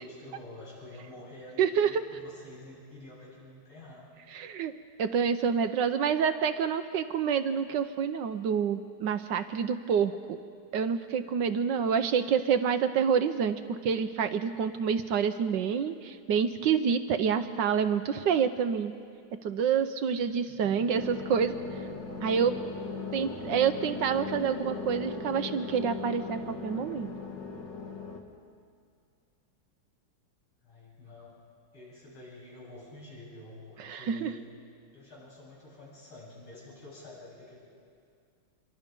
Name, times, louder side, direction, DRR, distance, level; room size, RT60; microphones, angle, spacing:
voice 1, 0.0-4.1 20.3-20.9 22.5-22.7 23.0-23.2 30.6-31.4 31.7-34.4 34.9-37.6, left 2 dB, 80° left, -6 dB, 8.9 m, -49 dB
voice 2, 1.6-2.0 4.3-4.7 5.0-10.2 10.7-18.9 19.4-21.5 22.2-22.5 23.1-27.1 33.8-34.3, right 7 dB, 70° right, 10 dB, 1.2 m, -27 dB
sound 1, 20.9-28.2, left 4 dB, 55° left, 2.4 m, -38 dB
26.5 x 23.5 x 5.3 m, 2.3 s
omnidirectional pair, 2.3 m